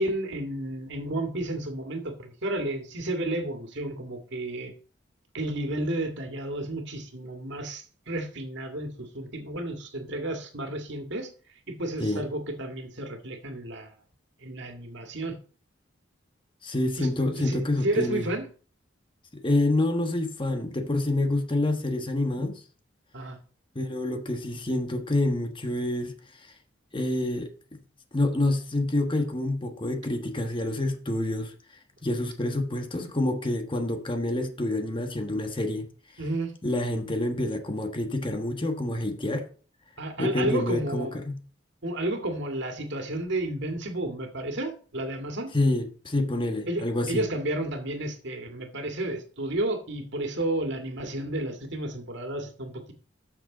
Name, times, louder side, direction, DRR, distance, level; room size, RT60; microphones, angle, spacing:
voice 1, 0.0-4.7 5.3-11.3 11.7-13.9 14.4-15.4 17.0-17.1 17.4-18.5 23.1-23.4 36.2-36.5 40.0-41.2 41.8-45.5 46.7-52.9, right 1 dB, 65° right, 2.0 m, -32 dB
voice 2, 16.6-18.3 19.4-22.6 23.7-26.5 26.9-27.5 28.1-31.5 32.0-35.9 36.6-39.5 40.2-41.4 45.5-47.2, left 1 dB, 25° left, 1.3 m, -27 dB
13.0 x 6.4 x 4.0 m
head